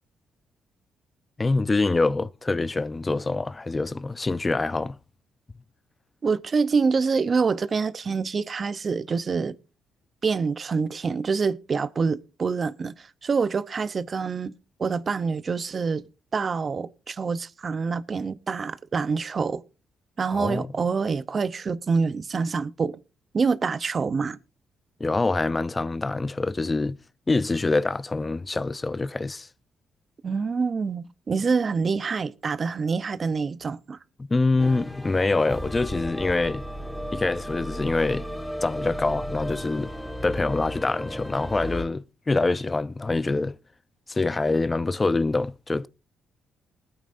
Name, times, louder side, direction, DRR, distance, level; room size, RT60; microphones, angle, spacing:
voice 1, 1.4-5.0 20.3-20.7 25.0-27.0 27.3-29.5 34.3-36.6 37.1-38.2 38.6-39.9 40.2-43.6 44.1-45.9, left 3 dB, 20° left, 0.6 m, -25 dB
voice 2, 6.2-9.6 10.2-14.5 14.8-16.0 16.3-19.6 20.2-23.0 23.3-24.4 30.2-34.0, right 5 dB, 40° right, 0.7 m, -26 dB
sound 1, 34.6-41.9, equal, 5° left, 1.4 m, -34 dB
20.0 x 8.9 x 2.6 m
cardioid pair, 90°, 0 cm